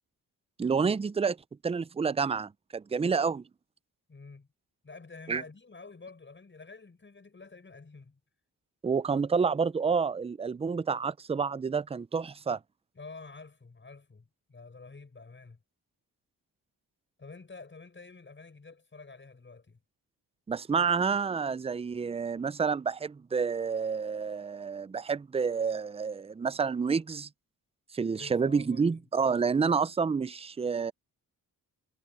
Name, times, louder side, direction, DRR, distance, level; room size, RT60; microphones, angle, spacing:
voice 1, 0.6-1.4 1.6-3.4 5.3-5.4 8.8-12.6 20.5-27.3 27.9-30.9, right 5 dB, 15° right, 0.5 m, -29 dB
voice 2, 4.1-4.5 4.8-8.2 12.9-15.6 17.2-19.8 28.1-29.0, left 4 dB, 30° left, 7.5 m, -49 dB
cardioid pair, 80°, 37 cm